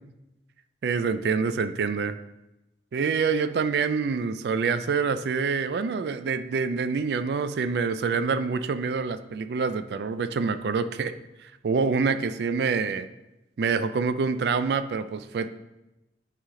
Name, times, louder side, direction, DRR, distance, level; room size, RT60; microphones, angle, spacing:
voice 1, 0.8-2.2 2.9-11.1 11.4-13.1 13.6-15.5, right 5 dB, 70° right, 11 dB, 0.3 m, -26 dB
9.0 x 3.4 x 3.6 m, 0.95 s
head